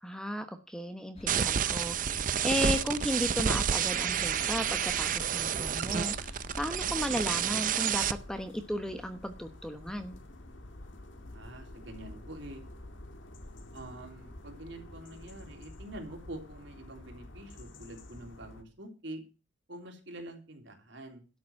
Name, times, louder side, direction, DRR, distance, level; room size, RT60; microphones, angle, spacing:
voice 1, 0.0-8.0 8.3-10.1, equal, 5° left, 7 dB, 1.0 m, -35 dB
sound 1, 1.2-7.4, left 1 dB, 30° left, 1.8 m, -46 dB
sound 2, 1.3-8.1, right 8 dB, 40° right, 0.5 m, -30 dB
sound 3, 1.5-18.6, left 1 dB, 70° left, 1.8 m, -49 dB
voice 2, 11.3-12.6 13.7-19.2 19.7-21.2, right 1 dB, 65° right, 2 dB, 3.3 m, -46 dB
12.5 x 6.9 x 7.6 m, 0.33 s
head